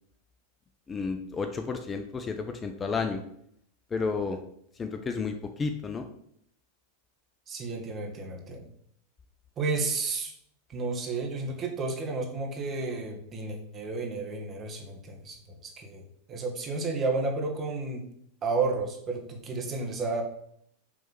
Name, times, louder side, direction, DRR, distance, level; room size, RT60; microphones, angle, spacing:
voice 1, 0.9-3.2 3.9-4.4 4.8-6.1, left 4 dB, 25° left, 6 dB, 0.7 m, -31 dB
voice 2, 7.5-8.7 9.6-10.3 10.7-16.0 16.3-18.1 18.4-20.2, right 3 dB, 35° right, 2 dB, 1.7 m, -32 dB
6.3 x 3.5 x 5.9 m, 0.70 s
hypercardioid pair, 100°, 0 cm